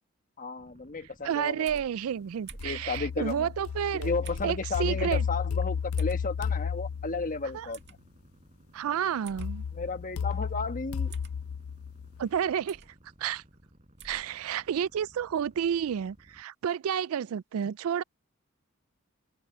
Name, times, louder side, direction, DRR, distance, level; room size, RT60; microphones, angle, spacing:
voice 1, 0.4-1.6 2.6-3.5 3.9-8.0 9.7-11.2, left 3 dB, 40° left, 1.3 m, -33 dB
sound 1, 0.6-16.4, equal, 30° right, 7.0 m, -59 dB
voice 2, 1.2-4.1 4.4-5.3 7.5-7.7 8.7-9.6 12.2-12.8 13.2-13.4 14.0-18.0, right 8 dB, 75° right, 0.3 m, -30 dB
sound 2, 1.7-1.9 2.5-2.8 4.2-4.6 6.0-6.2 7.7-7.9 9.2-9.5 11.1-11.4 12.7-12.9 14.0-14.2, right 4 dB, 55° right, 1.9 m, -46 dB
sound 3, 2.6-7.6 9.4-12.4, left 6 dB, 75° left, 0.4 m, -33 dB
head